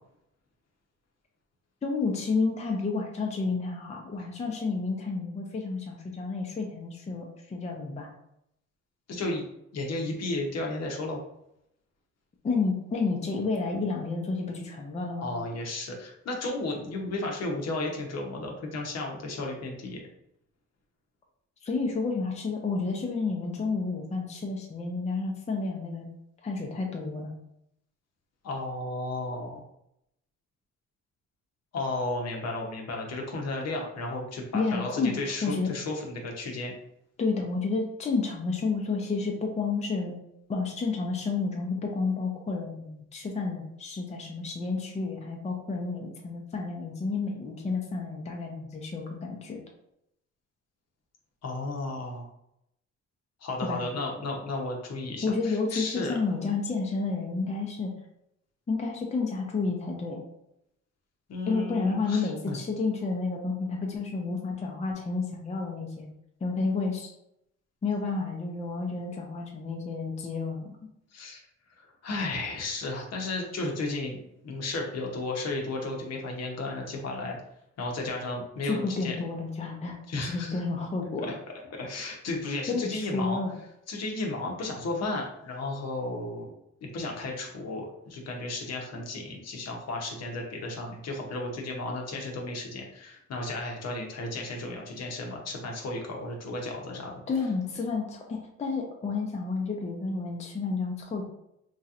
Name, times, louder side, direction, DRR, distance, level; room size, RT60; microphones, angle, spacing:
voice 1, 1.8-8.1 12.4-15.3 21.6-26.1 26.4-27.4 34.5-35.7 37.2-40.2 40.5-49.6 53.6-53.8 55.2-57.9 58.7-60.2 61.5-66.1 66.4-67.1 67.8-70.6 78.6-80.0 80.3-81.3 82.7-83.5 97.3-101.2, left 4 dB, 20° left, 0 dB, 0.5 m, -30 dB
voice 2, 9.1-9.5 9.7-11.2 15.2-20.1 28.4-29.6 31.7-36.7 51.4-52.3 53.4-56.1 61.3-62.6 71.1-71.4 71.8-74.2 74.4-77.4 77.8-79.2 80.1-80.5 81.3-81.4 81.7-83.4 83.9-86.5 86.8-97.1, left 2 dB, 60° left, 0 dB, 0.8 m, -33 dB
3.0 x 2.8 x 2.4 m, 0.79 s
cardioid pair, 90°, 30 cm